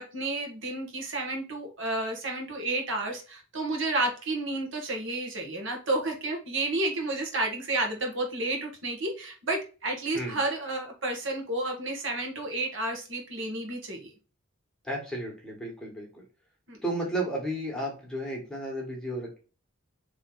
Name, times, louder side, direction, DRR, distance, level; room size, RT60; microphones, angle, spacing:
voice 1, 0.0-14.1 16.7-16.8, right 2 dB, 65° right, 2 dB, 1.3 m, -31 dB
voice 2, 14.8-16.2 16.8-19.4, right 1 dB, 5° left, -2 dB, 1.3 m, -33 dB
3.9 x 3.1 x 3.8 m, 0.35 s
head